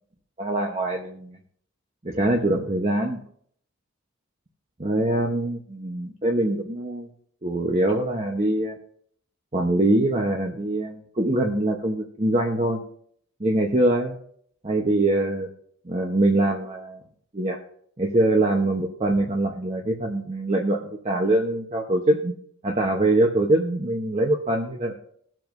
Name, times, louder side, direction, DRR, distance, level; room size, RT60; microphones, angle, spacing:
voice 1, 0.4-1.4 2.0-3.2 4.8-7.1 7.4-8.8 9.5-12.8 13.4-14.2 14.6-15.5 15.8-17.0 17.3-17.6 18.0-22.3 22.6-24.9, right 1 dB, 30° right, 0 dB, 0.9 m, -23 dB
21.0 x 7.6 x 2.6 m, 0.63 s
head